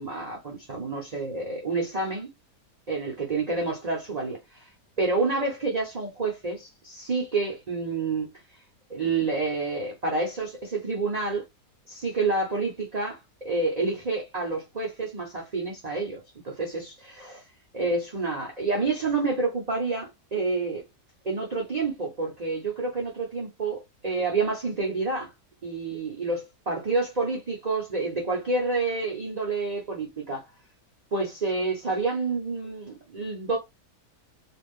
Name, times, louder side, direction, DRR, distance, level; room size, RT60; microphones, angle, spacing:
voice 1, 0.0-2.3 2.9-4.7 5.0-8.3 8.9-11.4 11.9-17.4 17.7-20.8 21.2-25.3 25.6-30.4 31.1-33.6, right 3 dB, 45° right, 0.5 m, -28 dB
2.4 x 2.4 x 3.5 m
omnidirectional pair, 1.8 m